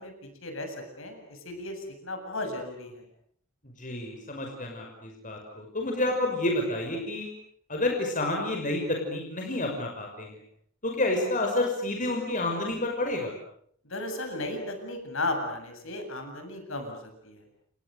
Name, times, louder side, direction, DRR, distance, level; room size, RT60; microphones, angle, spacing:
voice 1, 0.0-3.0 13.8-17.4, left 2 dB, 65° left, 5 dB, 7.9 m, -35 dB
voice 2, 3.8-7.3 7.7-10.3 10.8-13.3, left 2 dB, 35° left, 1 dB, 5.9 m, -29 dB
30.0 x 30.0 x 6.7 m, 0.65 s
head